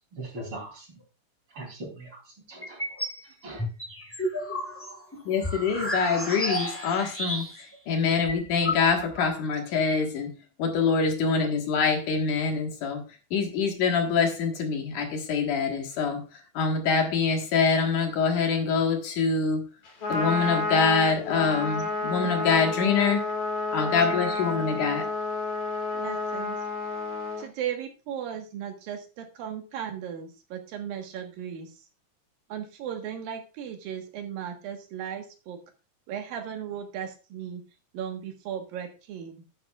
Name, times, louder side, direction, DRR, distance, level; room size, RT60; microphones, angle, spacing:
voice 1, 0.1-1.0 1.5-2.2 2.5-3.0 3.4-3.6, right 1 dB, 40° right, 2 dB, 3.9 m, -40 dB
sound 1, 2.6-3.2 3.6-7.8 8.0-8.1 8.3-9.3, left 1 dB, 20° left, 0.3 m, -32 dB
voice 2, 5.3-10.3 10.6-13.0 13.3-19.7 20.1-23.2 23.7-25.1, left 5 dB, 65° left, 3 dB, 3.0 m, -25 dB
Trumpet, 19.8-27.4, left 3 dB, 45° left, 4.4 m, -30 dB
voice 3, 25.9-26.6 27.4-31.7 32.5-35.6 36.1-37.6 37.9-39.4, right 9 dB, 80° right, 4 dB, 3.2 m, -36 dB
11.0 x 10.5 x 2.4 m, 0.31 s
omnidirectional pair, 4.0 m